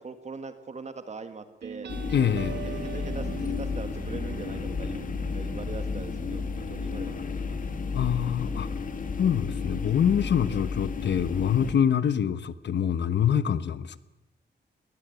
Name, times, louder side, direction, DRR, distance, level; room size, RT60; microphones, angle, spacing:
voice 1, 0.0-1.9 2.4-5.1 5.3-7.6, right 4 dB, 40° right, 9 dB, 1.6 m, -41 dB
sound 1, 1.6-8.8, right 7 dB, 75° right, 1.1 m, -42 dB
sound 2, 1.9-11.7, left 5 dB, 50° left, 2.2 m, -33 dB
voice 2, 2.1-2.6 7.9-8.7 9.2-14.0, left 8 dB, 85° left, 14 dB, 1.1 m, -25 dB
21.0 x 20.0 x 9.2 m, 0.96 s
wide cardioid pair, 165°, 18 cm